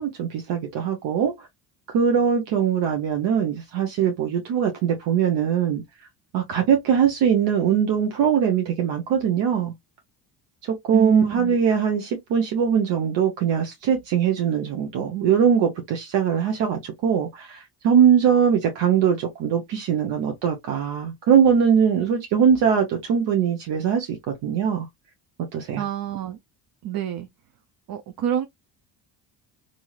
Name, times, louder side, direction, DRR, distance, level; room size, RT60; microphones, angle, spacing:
voice 1, 0.0-1.3 1.9-5.8 6.3-9.7 10.9-24.1 24.4-24.9 25.5-25.8, right 7 dB, 70° right, 0.9 m, -21 dB
voice 2, 10.9-11.6 25.8-26.4 26.8-27.3 27.9-28.5, right 10 dB, 50° right, 0.6 m, -27 dB
3.0 x 2.7 x 2.3 m
supercardioid pair, 90°, 45 cm